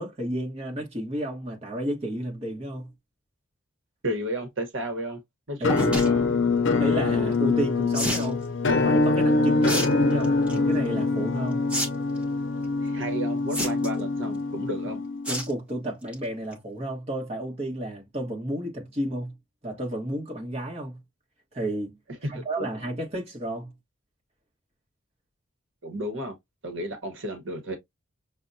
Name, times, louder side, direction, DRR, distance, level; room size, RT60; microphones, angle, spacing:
voice 1, 0.0-2.9 5.6-6.0 6.8-11.6 15.3-19.4 19.6-21.0 21.5-22.0 22.3-23.7, right 1 dB, 30° right, 1.2 m, -32 dB
voice 2, 4.0-5.2 5.5-6.3 12.8-15.0 22.2-22.7 25.8-26.3 26.6-27.8, right 1 dB, 65° right, 1.1 m, -32 dB
Musical instrument, 5.6-15.4, left 3 dB, 60° left, 0.6 m, -24 dB
sound 1, 5.7-6.1 7.9-8.3 9.6-9.9 10.2-10.6 11.7-11.9 12.2-12.3 13.5-14.0 15.3-15.5 15.9-16.1 16.5-16.6 16.8-16.9, equal, 5° right, 0.9 m, -29 dB
5.9 x 2.2 x 2.6 m
head